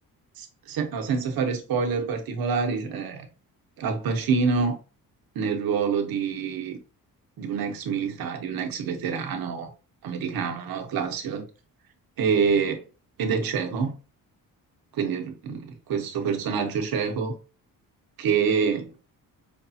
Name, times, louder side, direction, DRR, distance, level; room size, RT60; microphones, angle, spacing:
voice 1, 0.4-3.2 3.8-4.8 5.3-6.8 7.4-9.7 10.0-11.5 12.2-12.8 13.2-13.9 14.9-17.3 18.2-18.9, right 5 dB, 70° right, 1.1 m, -26 dB
5.2 x 2.4 x 2.7 m
cardioid pair, 120°, 36 cm